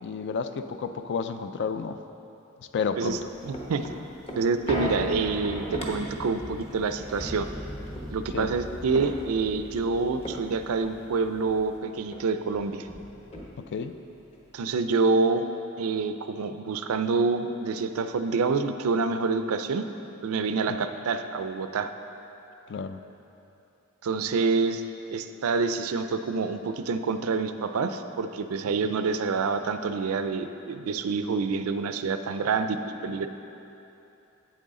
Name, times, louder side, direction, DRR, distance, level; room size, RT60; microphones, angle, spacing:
voice 1, 0.0-2.0 2.7-3.2 8.3-8.5 13.6-14.0 20.7-20.8 22.7-23.0 28.8-29.0, left 5 dB, 55° left, 9 dB, 0.4 m, -31 dB
sound 1, 3.0-11.8 12.1-12.2 12.5-13.9 14.3-14.4, equal, 30° left, 1.0 m, -37 dB
voice 2, 3.4-3.9 4.4-7.5 8.1-12.9 14.5-15.4 15.8-19.9 20.2-21.9 24.0-24.8 25.1-32.8 33.0-33.3, right 4 dB, 70° right, 9 dB, 0.4 m, -27 dB
8.4 x 7.9 x 3.7 m, 2.9 s
head